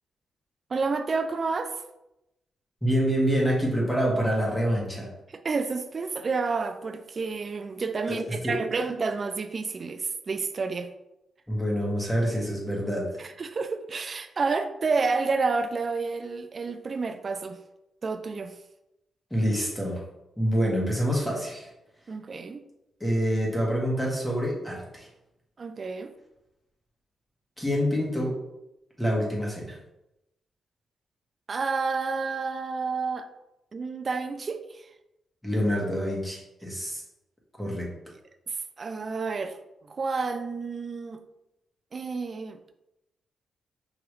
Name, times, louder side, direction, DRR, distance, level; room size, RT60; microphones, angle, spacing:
voice 1, 0.7-1.8 5.3-10.9 13.2-17.6 18.0-18.5 22.1-22.6 25.6-26.1 31.5-33.3 33.7-34.9 38.5-39.6 39.9-41.2 41.9-42.7, right 4 dB, 45° right, 8 dB, 0.3 m, -30 dB
voice 2, 2.8-5.1 8.1-8.5 11.5-13.1 19.3-20.0 20.4-21.7 23.0-25.1 27.6-28.3 29.0-29.8 35.4-37.0 37.6-37.9, equal, 5° left, -3 dB, 1.5 m, -26 dB
4.9 x 3.0 x 3.1 m, 0.89 s
cardioid pair, 95°, 0 cm